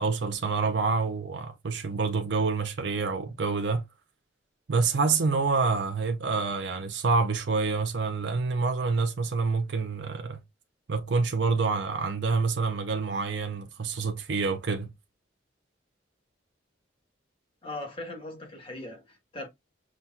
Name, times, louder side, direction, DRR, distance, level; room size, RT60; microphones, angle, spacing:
voice 1, 0.0-3.8 4.7-10.4 10.9-14.9, right 4 dB, 65° right, 0.5 m, -27 dB
voice 2, 17.6-19.5, left 2 dB, 30° left, 1.2 m, -39 dB
5.6 x 2.4 x 2.3 m
head